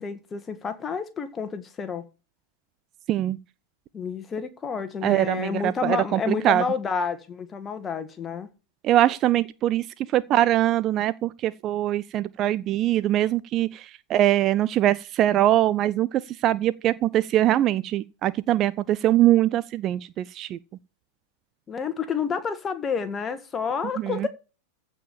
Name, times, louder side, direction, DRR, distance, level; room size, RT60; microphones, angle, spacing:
voice 1, 0.0-2.0 3.9-8.5 21.7-24.3, left 6 dB, 20° left, 1.8 m, -29 dB
voice 2, 5.0-6.6 8.8-9.8 10.1-20.6 24.0-24.3, right 13 dB, 35° right, 0.5 m, -22 dB
15.0 x 5.1 x 7.3 m
figure-of-eight pair, 90°, 0 cm